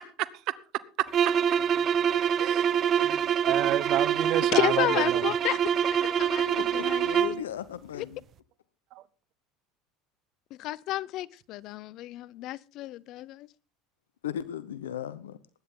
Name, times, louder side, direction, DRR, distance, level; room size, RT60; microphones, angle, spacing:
sound 1, 1.1-7.4, right 8 dB, 45° right, 0.8 m, -25 dB
voice 1, 2.4-5.2, right 14 dB, 60° right, 1.2 m, -30 dB
voice 2, 4.5-5.6 5.9-7.3 8.0-8.1 10.6-13.5, left 15 dB, 60° left, 0.7 m, -31 dB
voice 3, 6.5-8.2 14.2-15.4, left 10 dB, 90° left, 0.8 m, -37 dB
21.0 x 10.0 x 3.7 m
hypercardioid pair, 85°, 0 cm